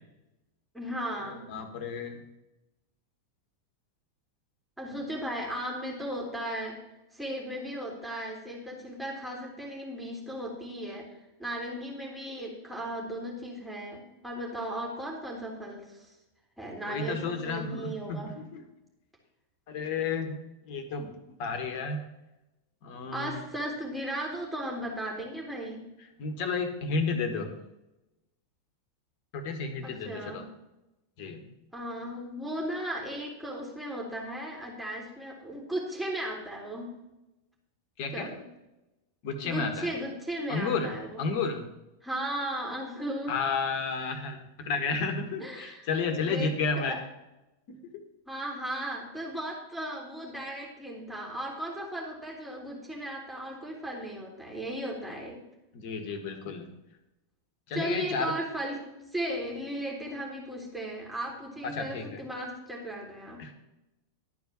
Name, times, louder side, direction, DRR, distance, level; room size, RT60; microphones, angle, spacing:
voice 1, 0.7-1.5 4.8-6.8 7.1-11.0 11.4-16.1 16.6-18.3 23.1-25.8 29.8-30.4 31.7-36.9 38.1-38.5 39.4-41.3 42.0-43.4 45.4-45.9 46.2-47.0 48.3-55.4 57.7-58.8 59.1-63.4, right 1 dB, 5° right, -2 dB, 2.9 m, -36 dB
voice 2, 1.3-2.2 16.9-18.6 19.7-20.4 20.6-21.1 21.4-22.0 22.8-23.4 26.2-27.5 29.3-30.4 31.2-31.4 38.0-38.3 39.2-39.9 40.5-40.9 41.2-41.6 43.3-47.0 47.9-48.0 55.7-56.7 57.7-58.3 61.6-62.2 63.4-63.5, left 4 dB, 45° left, 6 dB, 1.7 m, -32 dB
12.0 x 4.7 x 8.1 m, 0.94 s
figure-of-eight pair, 90°, 0 cm